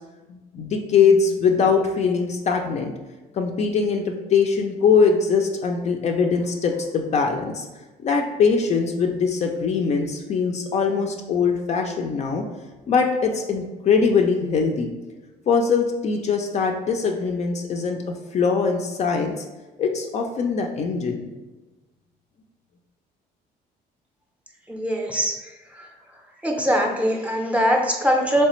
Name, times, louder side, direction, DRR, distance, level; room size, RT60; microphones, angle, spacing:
voice 1, 0.3-2.9 3.3-7.7 8.0-12.4 12.9-14.9 15.5-19.4 19.8-21.3, left 5 dB, 40° left, 3 dB, 0.4 m, -22 dB
voice 2, 24.7-25.4 26.4-28.4, equal, 10° right, 1 dB, 0.5 m, -21 dB
3.2 x 3.2 x 3.0 m, 1.2 s
cardioid pair, 110°, 17 cm